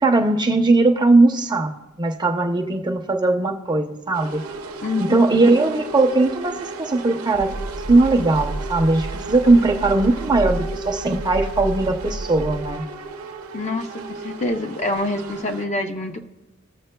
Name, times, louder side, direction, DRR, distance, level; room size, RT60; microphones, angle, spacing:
voice 1, 0.0-1.7 2.0-4.4 5.0-7.6 7.9-12.8, right 2 dB, 20° right, 4 dB, 0.6 m, -19 dB
sound 1, 4.1-15.7, right 3 dB, 80° right, 0.7 m, -35 dB
voice 2, 4.8-5.3 13.5-16.2, left 2 dB, 35° left, 5 dB, 0.5 m, -26 dB
sound 2, 7.3-12.7, right 2 dB, 75° left, 0.8 m, -31 dB
19.0 x 7.0 x 2.2 m, 1.1 s
head